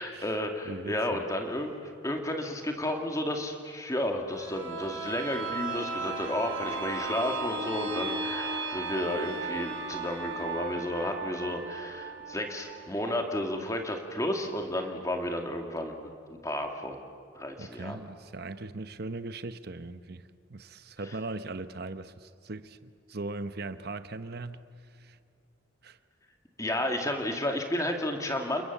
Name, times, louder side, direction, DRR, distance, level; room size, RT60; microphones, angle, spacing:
voice 1, 0.0-1.7 2.0-17.0 17.4-18.0 26.6-28.6, left 1 dB, 15° left, 2.2 m, -32 dB
voice 2, 0.6-1.2 17.6-25.2 25.8-26.0, right 2 dB, 50° right, 0.9 m, -39 dB
sound 1, 4.3-13.9 14.3-14.4, right 3 dB, 80° right, 4.8 m, -36 dB
28.5 x 21.5 x 7.4 m
head